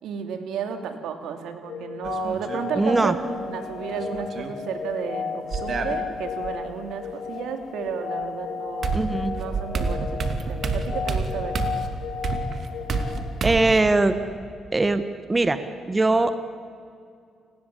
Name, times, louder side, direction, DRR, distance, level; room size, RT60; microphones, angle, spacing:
voice 1, 0.0-11.6, right 7 dB, 80° right, 7 dB, 2.8 m, -33 dB
sound 1, 1.6-14.4, left 6 dB, 70° left, 6.1 m, -34 dB
sound 2, 2.0-2.6 3.9-4.6 5.5-6.5 8.2-8.3 8.8-13.8, right 4 dB, 55° right, 2.7 m, -29 dB
voice 2, 2.8-3.1 8.9-9.3 13.4-14.2 14.7-16.4, right 2 dB, 20° right, 11 dB, 1.5 m, -21 dB
29.5 x 20.5 x 8.6 m, 2.3 s
cardioid pair, 90°, 0 cm